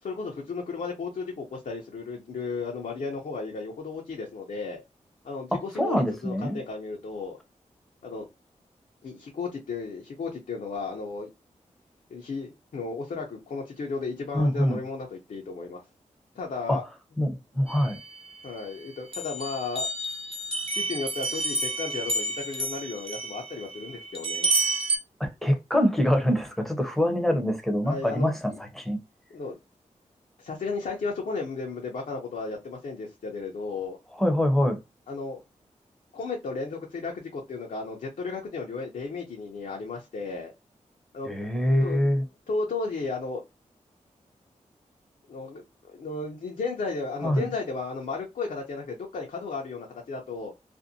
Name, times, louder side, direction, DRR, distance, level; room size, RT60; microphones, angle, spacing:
voice 1, 0.0-4.8 5.2-7.4 8.0-8.3 9.0-11.3 12.1-15.8 16.3-16.8 18.4-19.9 20.7-24.5 27.8-28.6 29.3-29.6 30.4-34.0 35.1-35.4 36.1-40.5 41.1-41.3 41.8-42.0 42.5-43.4 45.3-45.6 45.9-50.5, left 4 dB, 75° left, 0.7 m, -34 dB
voice 2, 5.5-6.6 14.3-14.8 16.7-16.8 17.2-18.0 25.2-29.0 34.2-34.8 41.3-42.2 47.2-47.5, equal, ahead, 0.7 m, -25 dB
sound 1, 17.7-18.7 19.1-25.0, right 2 dB, 45° right, 1.0 m, -30 dB
2.6 x 2.1 x 2.6 m
wide cardioid pair, 85°, 13 cm